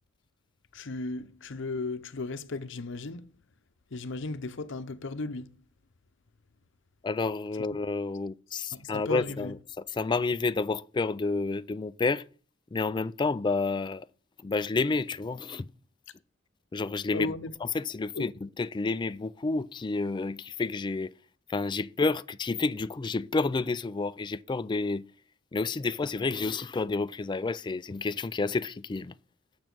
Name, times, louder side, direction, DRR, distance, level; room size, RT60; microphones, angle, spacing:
voice 1, 0.7-3.3 3.9-5.5 8.7-9.5 17.1-17.5 18.1-18.3, left 3 dB, 65° left, 0.7 m, -35 dB
voice 2, 7.0-9.5 9.9-12.2 12.7-14.1 14.4-15.7 16.7-17.3 17.7-21.1 21.5-25.0 25.5-29.1, left 3 dB, 20° left, 0.3 m, -30 dB
7.3 x 7.1 x 6.0 m
head